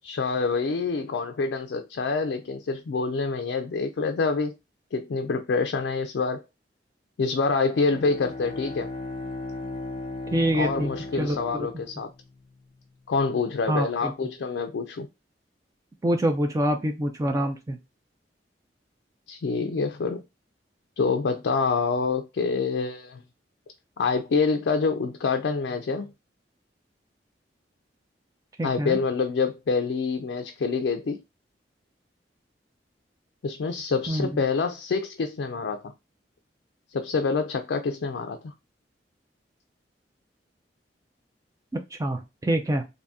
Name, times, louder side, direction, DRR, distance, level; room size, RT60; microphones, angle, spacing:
voice 1, 0.0-4.5 4.9-6.4 7.2-8.9 10.6-12.1 13.1-15.1 19.3-20.2 21.0-23.2 24.0-26.1 28.6-31.2 33.4-35.9 36.9-38.5, left 4 dB, 70° left, 0.4 m, -26 dB
Bowed string instrument, 7.7-12.5, left 2 dB, 30° left, 0.6 m, -36 dB
voice 2, 10.3-10.9 11.2-11.4 13.7-14.1 16.0-17.8 28.6-29.0 34.1-34.4 41.9-42.8, right 1 dB, 20° right, 0.3 m, -25 dB
2.7 x 2.6 x 3.4 m
head